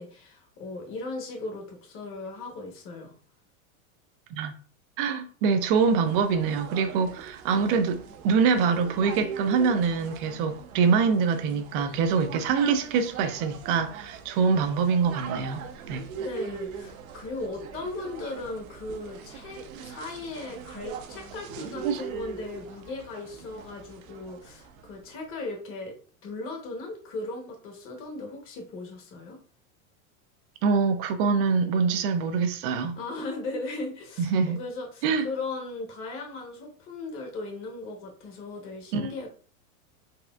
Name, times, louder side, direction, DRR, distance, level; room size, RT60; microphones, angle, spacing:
voice 1, 0.0-3.2 16.2-26.0 26.2-29.4 33.0-39.3, left 2 dB, 30° left, 1.0 m, -37 dB
voice 2, 5.0-15.6 15.9-16.0 21.8-22.0 30.6-32.9 34.3-34.6 35.0-35.3 38.9-39.0, right 5 dB, 40° right, 0.5 m, -24 dB
sound 1, 5.7-25.0, right 7 dB, 70° right, 0.8 m, -41 dB
4.2 x 3.3 x 2.3 m
supercardioid pair, 155°, 43 cm